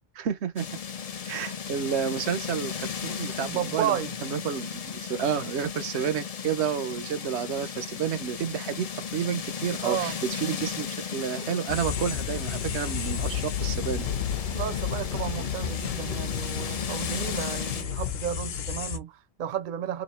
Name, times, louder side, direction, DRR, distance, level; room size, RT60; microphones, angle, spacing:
voice 1, 0.1-0.6 1.2-8.9 9.1-10.9 11.1-14.1, right 8 dB, 80° right, 1.0 m, -30 dB
sound 1, 0.6-17.8, left 7 dB, 45° left, 0.5 m, -36 dB
voice 2, 3.4-4.1 9.8-10.2 14.5-20.0, right 10 dB, 55° right, 0.7 m, -32 dB
sound 2, 11.7-19.0, left 8 dB, 65° left, 0.9 m, -32 dB
3.1 x 2.6 x 4.2 m
omnidirectional pair, 1.1 m